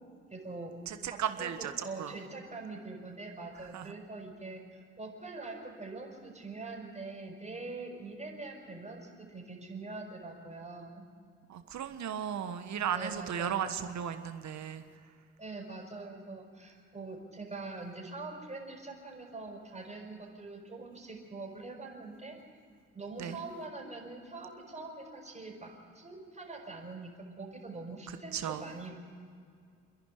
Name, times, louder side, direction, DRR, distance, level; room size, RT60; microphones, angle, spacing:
voice 1, 0.3-0.7 1.1-11.0 12.9-13.6 15.4-22.4 22.9-27.1 27.4-28.9, right 3 dB, 20° right, -2 dB, 5.8 m, -43 dB
voice 2, 0.9-2.1 3.7-3.9 11.5-14.8 23.2-23.4 28.3-28.7, right 9 dB, 60° right, 9 dB, 1.3 m, -35 dB
28.0 x 11.0 x 9.6 m, 2.3 s
hypercardioid pair, 45°, 31 cm